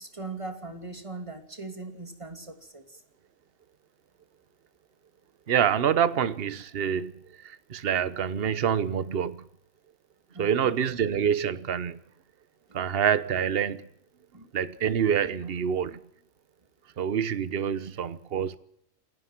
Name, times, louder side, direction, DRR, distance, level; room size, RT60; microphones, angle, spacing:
voice 1, 0.0-3.0 10.3-10.8 14.3-14.5, right 3 dB, 20° right, 2.9 m, -40 dB
voice 2, 5.5-7.1 7.4-9.5 10.4-12.0 12.7-13.8 14.5-16.0 17.0-18.6, right 8 dB, 50° right, 1.1 m, -26 dB
27.5 x 17.5 x 6.1 m
omnidirectional pair, 1.4 m